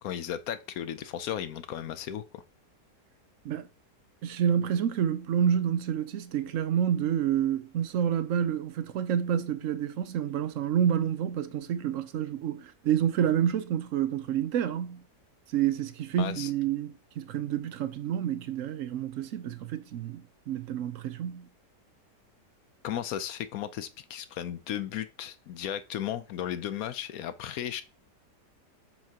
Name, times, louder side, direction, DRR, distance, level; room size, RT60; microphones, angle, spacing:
voice 1, 0.0-2.4 16.2-16.5 22.8-27.8, left 10 dB, 70° left, 0.9 m, -35 dB
voice 2, 4.2-15.0 15.5-21.5, right 9 dB, 65° right, 0.8 m, -28 dB
7.4 x 5.8 x 2.8 m
omnidirectional pair, 1.8 m